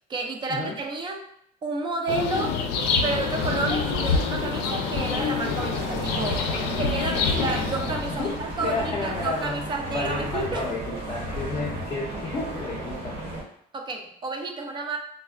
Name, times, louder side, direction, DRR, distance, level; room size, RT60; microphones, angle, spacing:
voice 1, 0.1-1.2 1.6-2.6 3.0-10.7 13.7-15.0, right 3 dB, 30° right, 4 dB, 0.4 m, -31 dB
sound 1, 2.1-8.4, left 5 dB, 90° left, 0.4 m, -27 dB
sound 2, 2.7-13.4, right 2 dB, 60° right, 1.1 m, -35 dB
sound 3, 7.2-8.0 8.5-9.3 9.8-10.6 11.1-11.8 12.4-12.5, left 2 dB, 75° right, 0.7 m, -37 dB
voice 2, 8.1-9.7 9.9-13.4, left 3 dB, 30° left, -4 dB, 0.5 m, -32 dB
3.1 x 2.1 x 2.4 m, 0.69 s
cardioid pair, 135°, 17 cm